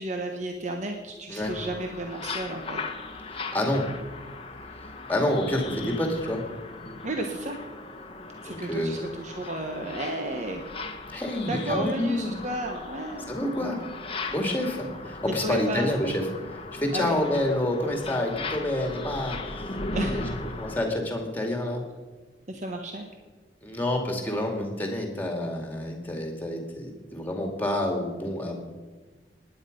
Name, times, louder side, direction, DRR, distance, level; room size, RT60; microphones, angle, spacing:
voice 1, 0.0-2.8 7.0-7.6 8.4-10.6 11.5-13.7 15.2-16.0 16.9-17.1 19.9-20.3 22.5-23.0, right 1 dB, 40° right, 3 dB, 1.2 m, -32 dB
sound 1, 1.4-20.9, left 3 dB, 30° left, 1.1 m, -38 dB
voice 2, 3.3-3.9 5.1-6.4 8.3-9.0 11.1-12.3 13.3-13.8 14.3-16.2 16.7-19.6 20.0-20.3 20.6-21.8 23.6-28.6, left 1 dB, 10° left, 2 dB, 2.2 m, -28 dB
19.0 x 10.0 x 5.2 m, 1.3 s
head